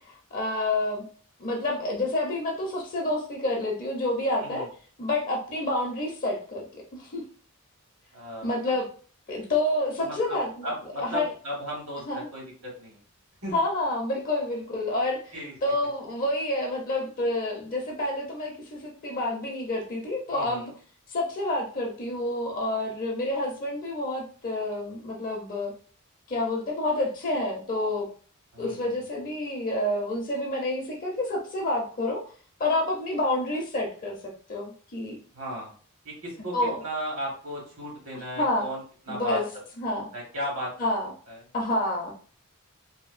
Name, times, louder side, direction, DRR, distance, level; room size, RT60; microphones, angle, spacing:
voice 1, 0.3-1.0 1.4-4.7 5.0-7.2 8.4-8.9 9.3-10.7 11.0-11.3 12.1-12.3 13.5-15.3 15.6-20.7 21.1-25.7 26.3-28.1 28.6-32.2 32.6-34.2 34.5-35.2 36.5-36.8 38.4-38.7 39.1-39.4 39.8-40.1 40.8-41.1 41.5-42.1, left 1 dB, 40° left, 0 dB, 0.5 m, -28 dB
voice 2, 8.1-8.7 10.0-13.0 13.4-13.5 14.7-14.8 15.3-15.5 20.3-20.7 28.5-29.0 35.3-35.7 36.0-39.4 40.1-40.7 41.3-41.4, equal, 70° right, -2 dB, 1.5 m, -36 dB
2.7 x 2.5 x 2.4 m, 0.42 s
head